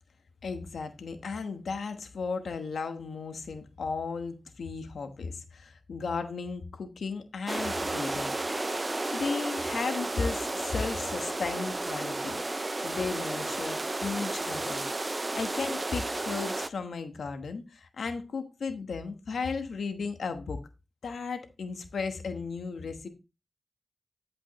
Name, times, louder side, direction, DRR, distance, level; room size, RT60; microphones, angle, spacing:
voice 1, 0.4-8.3 9.1-12.4 12.8-14.9 15.4-20.6 21.0-23.1, left 4 dB, 85° left, 1.2 m, -35 dB
sound 1, 7.5-16.7, right 2 dB, 30° right, 0.5 m, -32 dB
11.5 x 5.2 x 3.1 m
cardioid pair, 60°, 0 cm